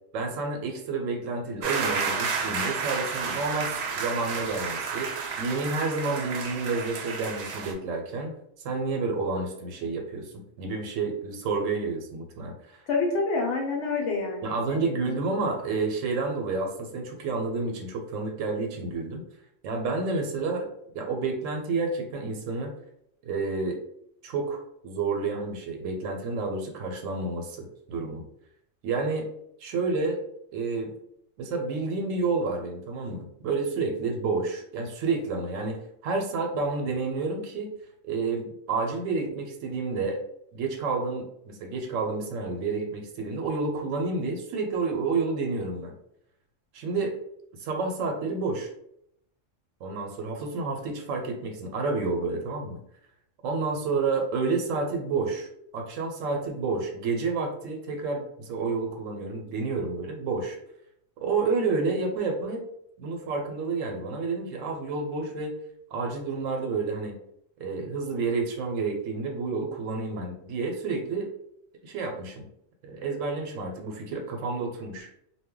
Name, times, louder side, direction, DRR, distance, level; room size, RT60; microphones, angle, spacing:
voice 1, 0.1-8.4 8.6-10.3 10.6-12.8 14.4-19.2 19.6-20.7 20.9-22.7 23.3-23.8 24.2-28.2 28.8-29.3 29.6-30.2 30.5-30.9 31.4-37.7 38.0-40.2 40.5-45.9 46.7-47.2 47.6-48.7 49.8-52.8 53.4-55.5 55.7-60.6 61.2-62.6 63.0-65.5 65.9-67.1 67.6-71.3 71.8-72.4 72.8-75.1, right 4 dB, 85° right, 3 dB, 1.0 m, -30 dB
sound 1, 1.6-7.7, right 5 dB, 65° right, 0.7 m, -31 dB
voice 2, 12.9-15.2, left 3 dB, 75° left, 0 dB, 0.9 m, -28 dB
2.2 x 2.1 x 3.6 m, 0.74 s
omnidirectional pair, 1.3 m